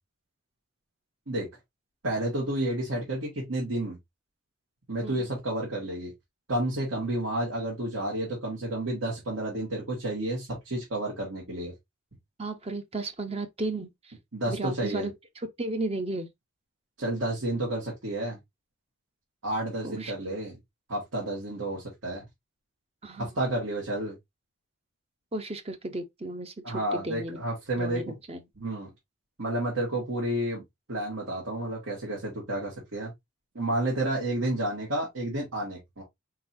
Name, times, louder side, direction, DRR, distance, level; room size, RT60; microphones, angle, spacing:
voice 1, 2.0-4.0 4.9-6.1 6.5-11.7 14.3-15.1 17.0-18.4 19.4-20.6 20.9-22.2 23.2-24.2 26.6-28.0 28.6-28.9 29.4-30.6 30.9-33.1 33.6-36.0, right 1 dB, 80° right, 1.8 m, -30 dB
voice 2, 12.4-14.1 14.5-16.3 19.8-20.1 23.0-23.3 25.3-27.4 27.8-28.4, right 2 dB, 30° right, 0.7 m, -34 dB
4.5 x 3.8 x 2.6 m
head